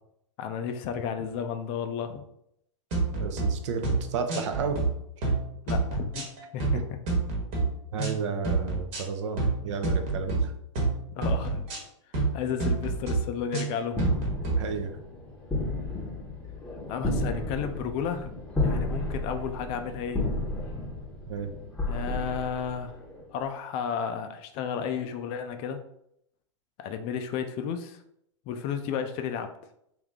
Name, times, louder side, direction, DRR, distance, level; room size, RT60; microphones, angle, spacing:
voice 1, 0.4-2.2 5.7-6.3 6.5-6.6 11.1-11.7 12.3-14.0 16.9-18.4 18.6-20.3 21.9-22.9 23.3-25.8 26.8-28.0 28.5-29.5, left 7 dB, 35° left, 8 dB, 0.4 m, -32 dB
sound 1, 2.9-3.5 3.8-4.0 4.3-4.9 5.2-5.4 5.7-6.8 7.1-7.6 8.0-8.2 8.4-9.0 9.4-9.6 9.8-10.4 10.8-10.9 11.2-11.8 12.1-12.3 12.6-13.2 13.5-14.6, right 3 dB, 40° right, 1.2 m, -27 dB
voice 2, 3.1-4.8 6.7-6.8 7.9-10.5 14.6-15.0 18.9-19.0 21.3-21.5, right 5 dB, 60° right, 7 dB, 0.6 m, -32 dB
sound 2, 13.9-23.2, left 2 dB, 5° left, 0.8 m, -32 dB
3.4 x 2.7 x 3.6 m, 0.76 s
hypercardioid pair, 130°, 17 cm